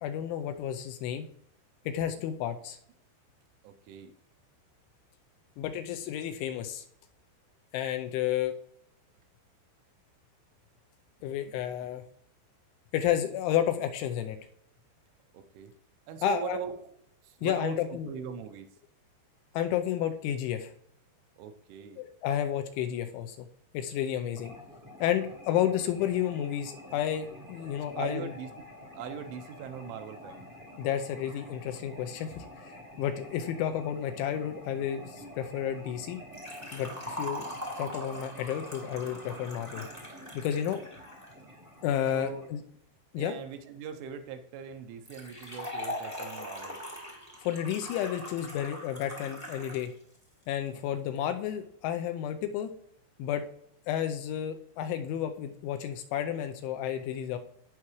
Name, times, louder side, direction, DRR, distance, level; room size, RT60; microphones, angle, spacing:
voice 1, 0.0-1.3 1.9-2.8 5.6-6.8 7.7-8.5 11.2-12.0 12.9-14.4 16.2-16.6 17.4-18.1 19.5-20.7 22.0-23.5 23.7-24.6 25.0-28.3 30.8-36.2 36.7-37.5 37.8-39.9 40.3-40.8 41.8-42.6 43.1-43.3 47.4-49.9 50.5-52.7 53.2-53.4 53.9-57.4, left 10 dB, 80° left, 7 dB, 2.9 m, -31 dB
voice 2, 3.6-4.1 11.5-11.6 15.3-15.7 16.1-17.0 17.2-18.7 21.4-22.1 28.0-28.5 28.9-30.4 42.1-42.5 43.2-46.8 50.9-51.1, right 7 dB, 80° right, 7 dB, 3.1 m, -41 dB
sound 1, 24.4-42.5, equal, 45° right, 0.6 m, -48 dB
Liquid, 36.3-41.3 45.0-49.9 50.1-50.2 51.1-51.2, equal, 15° left, 0.5 m, -41 dB
17.5 x 5.9 x 3.1 m, 0.70 s
omnidirectional pair, 5.7 m